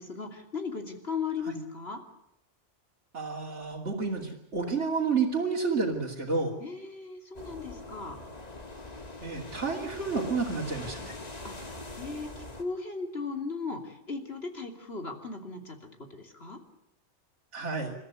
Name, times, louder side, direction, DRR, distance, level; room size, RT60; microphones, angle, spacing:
voice 1, 0.0-2.0 6.6-8.2 11.4-11.5 12.0-15.8 16.1-16.6, left 4 dB, 60° left, 4 dB, 3.2 m, -37 dB
voice 2, 3.1-6.5 9.2-11.2 17.5-17.9, right 4 dB, 75° right, -3 dB, 3.2 m, -30 dB
sound 1, 7.3-12.6, left 2 dB, 35° left, 2.1 m, -43 dB
28.5 x 13.5 x 9.5 m, 0.83 s
omnidirectional pair, 1.2 m